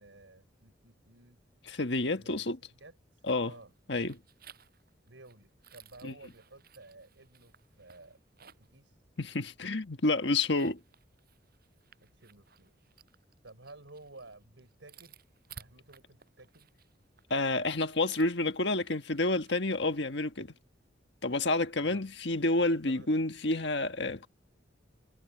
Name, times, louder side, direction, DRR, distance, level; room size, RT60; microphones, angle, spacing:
voice 1, 0.0-1.4 2.2-2.4 2.8-3.7 5.1-8.2 8.6-9.0 12.0-12.8 13.4-15.2 15.6-16.7 21.8-22.0 22.8-23.1, right 2 dB, 85° right, 4.9 m, -54 dB
voice 2, 1.7-2.6 3.3-3.5 3.9-4.2 6.0-6.1 9.2-10.8 17.3-20.5 21.2-24.3, left 2 dB, 65° left, 1.6 m, -29 dB
sound 1, 3.4-3.8 4.1-8.8 9.2-9.3 10.3-19.6, right 6 dB, 55° right, 8.0 m, -57 dB
head